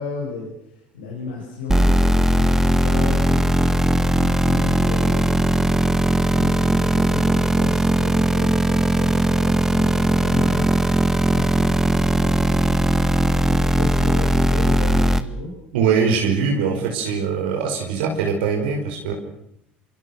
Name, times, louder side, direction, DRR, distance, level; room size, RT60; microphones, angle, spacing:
voice 1, 0.0-3.7 4.0-10.7 11.3-12.6 13.3-15.5, left 4 dB, 85° left, -2 dB, 7.0 m, -33 dB
sound 1, 1.7-15.2, right 1 dB, 10° right, 1.9 m, -18 dB
voice 2, 15.7-19.1, right 6 dB, 80° right, 1 dB, 5.3 m, -22 dB
27.5 x 26.0 x 6.5 m, 0.76 s
hypercardioid pair, 65°, 5 cm